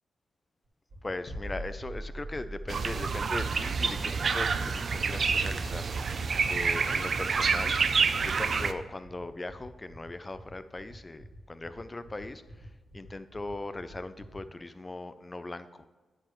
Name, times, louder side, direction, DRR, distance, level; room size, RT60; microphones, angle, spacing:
sound 1, 0.6-14.4, equal, 70° right, 2.7 m, -52 dB
voice 1, 1.0-5.9 6.5-7.8 8.2-12.7 12.9-15.9, left 2 dB, 25° left, 13 dB, 0.4 m, -39 dB
sound 2, 1.3-7.0 7.2-7.5, right 1 dB, 65° left, 1.5 m, -44 dB
sound 3, 2.7-8.7, right 5 dB, 55° right, 0.4 m, -28 dB
9.0 x 7.5 x 3.1 m, 1.3 s
cardioid pair, 85°, 0 cm